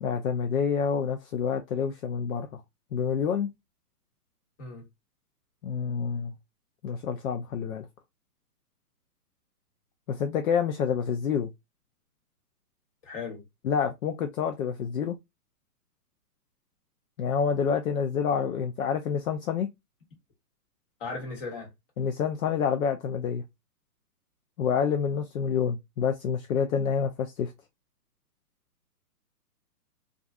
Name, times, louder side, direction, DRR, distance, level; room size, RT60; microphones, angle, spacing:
voice 1, 0.0-2.6 2.9-3.5 5.6-6.3 6.8-7.9 10.1-11.5 13.6-15.2 17.2-19.7 22.0-23.4 24.6-27.5, left 7 dB, 60° left, 0.5 m, -28 dB
voice 2, 13.0-13.4 21.0-21.7, left 4 dB, 35° left, 1.3 m, -36 dB
2.5 x 2.4 x 2.3 m
hypercardioid pair, 150°, 47 cm